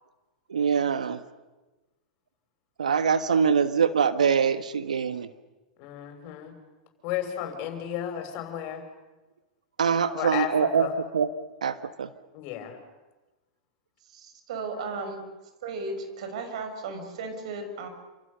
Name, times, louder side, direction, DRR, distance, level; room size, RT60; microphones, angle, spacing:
voice 1, 0.5-1.2 2.8-5.3 9.8-10.9 11.1-11.3 11.6-12.1, right 6 dB, 80° right, 12 dB, 1.4 m, -24 dB
voice 2, 5.8-6.5 7.0-8.8 10.1-10.9 12.3-12.8, left 10 dB, 50° left, 5 dB, 6.5 m, -33 dB
voice 3, 14.1-15.2 15.6-17.9, right 3 dB, 65° right, 6 dB, 6.3 m, -35 dB
29.0 x 27.0 x 6.8 m, 1.1 s
hypercardioid pair, 105°, 4 cm